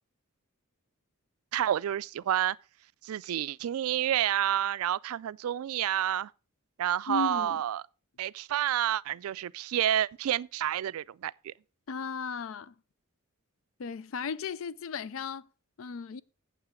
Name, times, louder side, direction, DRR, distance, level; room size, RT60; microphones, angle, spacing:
voice 1, 1.5-2.6 3.0-6.3 6.8-7.8 8.2-11.5, right 11 dB, 85° right, 0.3 m, -29 dB
voice 2, 7.1-7.6 11.9-12.7 13.8-15.5 15.8-16.2, left 5 dB, 65° left, 0.4 m, -35 dB
8.8 x 7.6 x 3.6 m
head